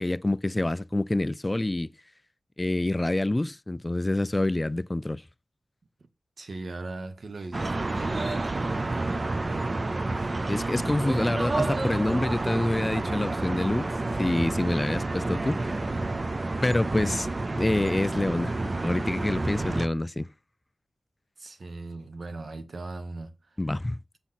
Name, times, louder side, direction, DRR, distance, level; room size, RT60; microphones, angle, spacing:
voice 1, 0.0-1.9 2.6-5.2 10.5-13.9 14.2-15.8 16.6-17.3 17.5-18.6 18.8-20.3 23.6-24.0, left 1 dB, 20° left, 0.3 m, -27 dB
voice 2, 6.4-9.3 21.4-23.6, right 2 dB, 70° right, 1.1 m, -39 dB
sound 1, 7.5-19.9, right 2 dB, 40° right, 0.6 m, -29 dB
7.0 x 4.1 x 5.7 m
wide cardioid pair, 100°, 0 cm